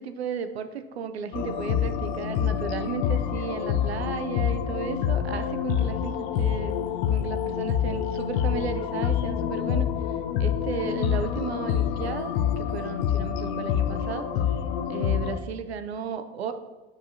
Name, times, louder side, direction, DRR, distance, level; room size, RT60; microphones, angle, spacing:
voice 1, 0.0-9.9 10.4-14.3 14.9-16.5, right 6 dB, 75° right, 9 dB, 0.6 m, -34 dB
sound 1, 1.3-15.4, left 9 dB, 50° left, 0.6 m, -27 dB
9.3 x 4.8 x 2.8 m, 1.1 s
figure-of-eight pair, 70°, 32 cm